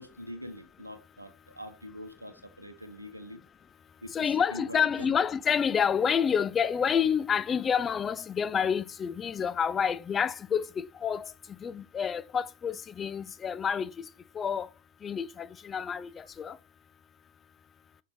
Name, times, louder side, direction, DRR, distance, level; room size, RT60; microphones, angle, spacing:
voice 1, 0.0-3.4 4.0-5.1, equal, 85° right, 0.8 m, -44 dB
voice 2, 4.1-11.3 11.6-14.1 14.3-14.7 15.0-16.6, left 7 dB, 20° left, 0.3 m, -28 dB
7.0 x 4.4 x 3.2 m
figure-of-eight pair, 90°, 0 cm